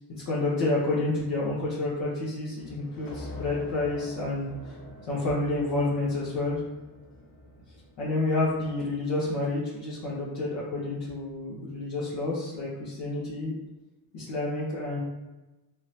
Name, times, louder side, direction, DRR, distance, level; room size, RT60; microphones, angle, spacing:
voice 1, 0.2-4.7 5.1-6.6 8.0-13.5 14.1-15.0, left 2 dB, 90° left, -8 dB, 1.1 m, -29 dB
sound 1, 2.6-8.9, left 1 dB, 50° left, 1.1 m, -45 dB
3.8 x 3.2 x 2.7 m, 1.1 s
supercardioid pair, 60°, 44 cm